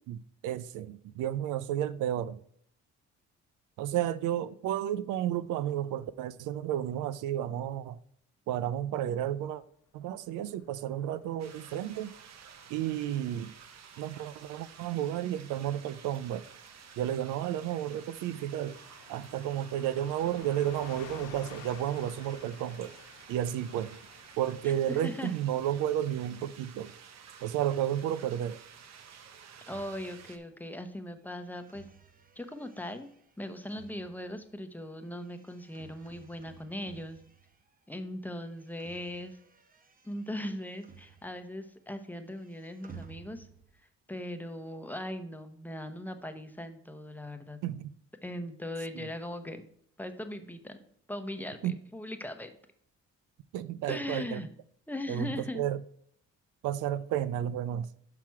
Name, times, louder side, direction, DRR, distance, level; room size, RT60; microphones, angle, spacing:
voice 1, 0.4-2.4 3.8-8.0 8.5-9.6 9.9-12.1 12.7-13.5 14.0-16.5 17.0-18.8 19.1-22.9 23.3-24.0 24.4-26.9 27.4-28.6 47.6-47.9 49.0-49.1 51.6-51.8 53.5-54.4 55.1-55.8 56.6-57.9, right 11 dB, 90° right, 0.5 m, -32 dB
Car passing by / Truck, 10.4-24.8, left 8 dB, 80° left, 1.0 m, -54 dB
sound 1, 11.4-30.4, right 7 dB, 60° right, 0.9 m, -52 dB
voice 2, 24.6-25.4 29.7-31.8 32.4-33.1 33.4-37.2 37.9-39.4 40.0-43.5 44.1-47.6 48.2-49.6 50.0-50.8 51.1-52.5 53.9-54.5 54.9-55.6, left 1 dB, 5° left, 0.8 m, -39 dB
sound 2, 28.6-37.9 38.2-41.7 41.9-43.8, right 6 dB, 30° right, 0.9 m, -57 dB
5.9 x 5.9 x 4.6 m
cardioid pair, 90°, 30 cm